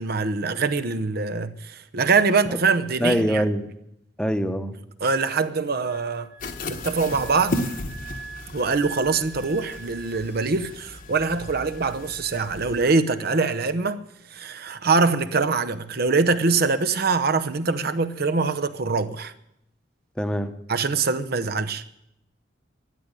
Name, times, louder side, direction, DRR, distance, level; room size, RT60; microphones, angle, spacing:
voice 1, 0.0-3.5 5.0-6.3 6.7-7.6 8.5-14.0 14.3-19.3 20.7-21.8, right 4 dB, 55° right, 0.8 m, -23 dB
voice 2, 3.0-3.7 4.2-4.8 20.2-20.5, equal, 5° left, 1.0 m, -23 dB
Wind instrument woodwind instrument, 5.8-13.3, right 4 dB, 85° left, 2.2 m, -44 dB
sound 1, 6.4-12.9, left 1 dB, 50° left, 1.2 m, -35 dB
12.5 x 9.6 x 9.8 m
head